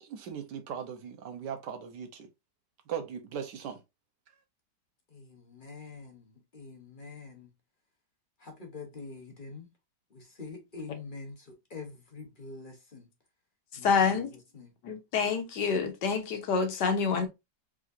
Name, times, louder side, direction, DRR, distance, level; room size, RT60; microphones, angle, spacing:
voice 1, 0.0-2.3 2.9-3.8, right 8 dB, 80° right, 1.5 m, -38 dB
voice 2, 5.1-6.3 6.5-7.5 8.4-9.7 10.1-13.1 13.8-14.2 14.5-14.7, left 4 dB, 35° left, 0.9 m, -45 dB
voice 3, 13.8-14.3 14.8-17.3, left 5 dB, 75° left, 1.6 m, -27 dB
4.8 x 3.6 x 2.5 m
omnidirectional pair, 1.9 m